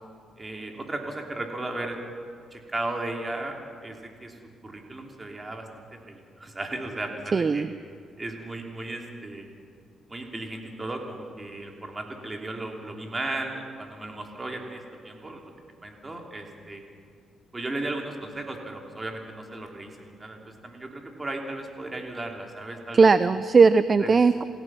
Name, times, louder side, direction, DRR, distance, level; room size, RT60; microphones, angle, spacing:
voice 1, 0.4-2.0 2.5-4.4 4.6-7.7 8.2-9.5 10.1-15.5 15.8-16.8 17.5-23.1 24.0-24.1, right 2 dB, 20° right, 2 dB, 3.1 m, -35 dB
voice 2, 7.3-7.7 22.9-24.4, right 4 dB, 35° right, 14 dB, 0.6 m, -18 dB
27.5 x 17.0 x 6.1 m, 2.3 s
cardioid pair, 90°, 0 cm